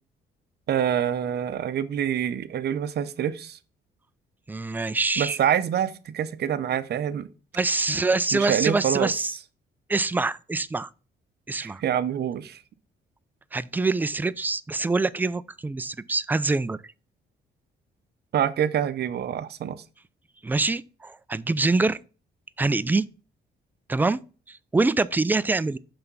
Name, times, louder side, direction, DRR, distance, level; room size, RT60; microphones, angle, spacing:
voice 1, 0.7-3.6 5.2-7.3 8.3-9.1 11.6-12.6 18.3-19.8, right 9 dB, 55° right, 0.6 m, -26 dB
voice 2, 4.5-5.4 7.5-9.4 9.9-10.9 11.5-11.8 13.5-16.8 20.4-22.0 22.6-23.1 23.9-24.2 24.5-25.8, right 3 dB, 10° right, 0.3 m, -25 dB
5.8 x 3.4 x 5.5 m
cardioid pair, 90°, 20 cm